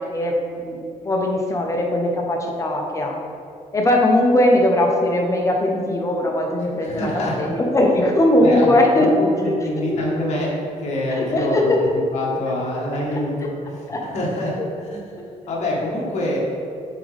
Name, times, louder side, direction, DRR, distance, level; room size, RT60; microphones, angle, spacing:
voice 1, 0.0-3.1 3.7-9.1 9.5-10.0 11.1-11.9 13.9-14.0 14.6-14.7, left 1 dB, 20° left, 0 dB, 0.9 m, -20 dB
voice 2, 6.8-7.4 8.4-8.7 9.0-10.5 10.8-14.5 14.8-15.2 15.5-16.4, left 1 dB, 55° left, -4 dB, 1.5 m, -26 dB
7.5 x 3.8 x 3.4 m, 2.6 s
cardioid pair, 135°, 14 cm